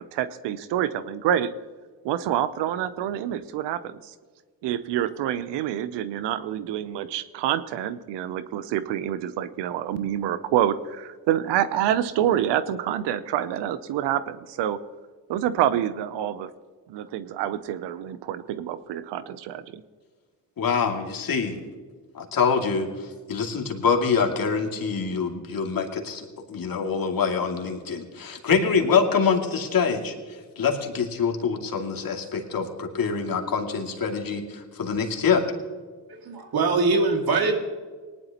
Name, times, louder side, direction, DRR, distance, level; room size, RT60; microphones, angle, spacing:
voice 1, 0.0-1.5 2.0-4.1 4.6-14.8 15.3-16.5 16.9-19.8, right 11 dB, 85° right, 14 dB, 0.7 m, -27 dB
voice 2, 20.6-21.6 22.1-35.4, left 5 dB, 55° left, 1 dB, 2.5 m, -25 dB
voice 3, 36.1-37.6, right 3 dB, 60° right, 3 dB, 2.4 m, -22 dB
19.5 x 11.0 x 2.9 m, 1.5 s
supercardioid pair, 60°, 41 cm